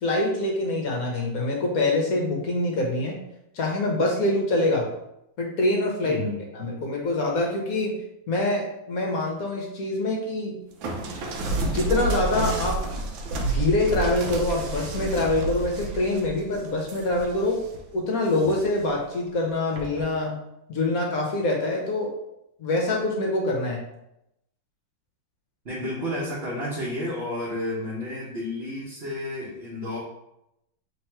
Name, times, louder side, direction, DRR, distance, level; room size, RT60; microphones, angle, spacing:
voice 1, 0.0-3.2 3.5-4.9 5.4-6.2 6.5-8.0 8.3-10.6 11.6-12.8 13.3-17.6 17.9-20.4 20.7-22.1 22.6-23.8, left 2 dB, 60° left, -1 dB, 1.1 m, -25 dB
voice 2, 6.0-6.4 25.6-30.0, left 1 dB, 40° right, -7 dB, 1.0 m, -31 dB
sound 1, 10.8-17.8 18.3-18.9 19.8-20.1, right 3 dB, 85° right, 1.5 m, -30 dB
3.5 x 3.0 x 4.5 m, 0.83 s
omnidirectional pair, 2.0 m